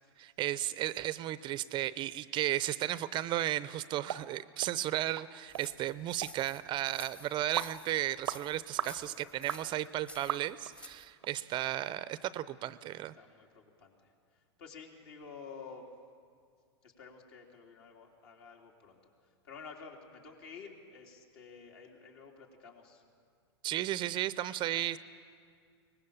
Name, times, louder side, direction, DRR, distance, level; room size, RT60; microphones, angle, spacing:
voice 1, 0.2-13.1 23.6-25.0, right 14 dB, 35° right, 16 dB, 0.6 m, -34 dB
sound 1, 4.1-4.2 4.6-4.7 5.2-5.3 5.5-5.7 6.2-6.4 6.9-7.0 7.6-7.8 8.3-8.4 8.8-9.0 9.5-9.6 10.3-10.7 11.2-11.3 11.8-11.9 12.4-12.5, right 10 dB, 80° right, 0.7 m, -36 dB
sound 2, 5.5-11.1, equal, 5° left, 0.9 m, -52 dB
voice 2, 8.8-9.7 13.1-15.9 16.8-23.0 24.7-24.8, left 5 dB, 65° left, 0 dB, 3.6 m, -51 dB
23.0 x 19.5 x 7.2 m, 2.1 s
hypercardioid pair, 110°, 15 cm